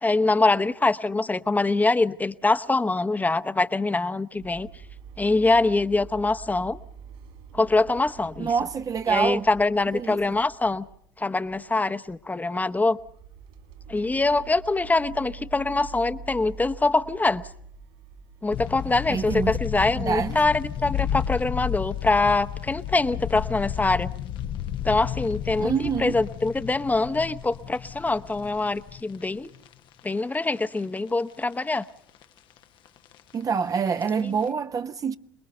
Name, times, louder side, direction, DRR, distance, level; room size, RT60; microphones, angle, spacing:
voice 1, 0.0-4.7 5.2-6.8 7.5-8.5 9.1-10.8 11.2-13.0 13.9-17.4 18.4-24.1 24.8-29.5 30.0-31.9, left 3 dB, 15° left, 0.9 m, -24 dB
sound 1, 4.4-11.1 11.4-11.7 12.1-12.2 12.6-19.4, right 5 dB, 65° right, 4.0 m, -45 dB
voice 2, 8.4-9.5 9.9-10.2 19.1-19.6 19.9-20.4 25.6-26.2 33.3-35.2, right 6 dB, 35° right, 0.9 m, -26 dB
sound 2, 18.5-30.0 30.3-30.4 31.0-31.8 32.1-32.2 32.6-33.9 34.2-34.5, left 10 dB, 50° left, 0.9 m, -32 dB
27.0 x 21.0 x 6.7 m
figure-of-eight pair, 60°, 11 cm